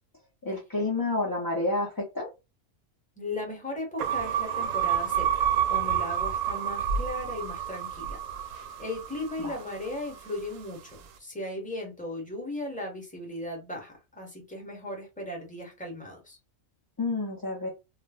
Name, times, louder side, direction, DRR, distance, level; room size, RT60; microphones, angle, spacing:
voice 1, 0.4-2.3 9.4-9.6 17.0-17.7, left 2 dB, 25° left, 0.4 m, -29 dB
voice 2, 3.2-16.4, left 1 dB, 5° left, 0.9 m, -37 dB
sound 1, 4.0-10.4, right 8 dB, 75° right, 0.9 m, -29 dB
2.4 x 2.1 x 3.4 m
omnidirectional pair, 1.3 m